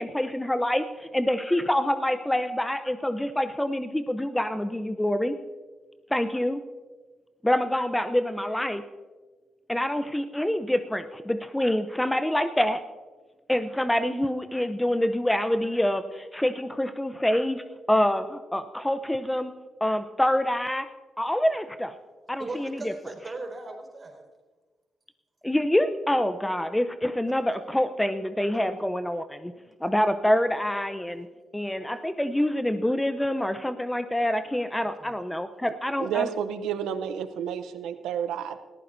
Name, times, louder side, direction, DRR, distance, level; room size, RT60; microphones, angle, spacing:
voice 1, 0.0-5.4 6.1-6.6 7.4-8.8 9.7-12.8 13.5-17.6 17.9-19.5 19.8-20.9 21.2-21.9 22.3-22.9 25.4-29.5 29.8-31.3 31.5-36.3, left 1 dB, 10° left, 10 dB, 0.7 m, -26 dB
voice 2, 22.4-24.2 29.8-29.9 31.7-32.0 35.0-35.1 35.5-35.6, right 2 dB, 40° right, 1 dB, 4.5 m, -39 dB
voice 3, 36.0-38.6, right 8 dB, 85° right, 11 dB, 0.7 m, -30 dB
20.0 x 14.5 x 2.7 m, 1.3 s
supercardioid pair, 55°, 0 cm